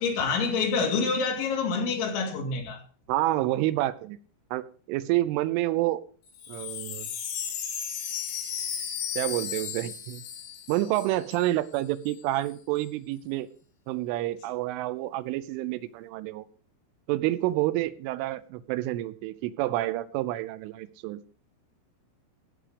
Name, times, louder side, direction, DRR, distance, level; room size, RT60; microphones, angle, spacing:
voice 1, 0.0-2.8, left 4 dB, 70° left, 4.8 m, -27 dB
voice 2, 3.1-4.2 4.5-6.0 6.5-7.1 9.2-10.2 10.7-13.5 13.9-16.5 17.1-21.2, right 16 dB, 85° right, 3.2 m, -28 dB
Wind chime, 6.3-11.5 11.7-11.8 12.1-12.5, left 8 dB, 90° left, 4.9 m, -35 dB
16.5 x 6.3 x 5.0 m
omnidirectional pair, 5.6 m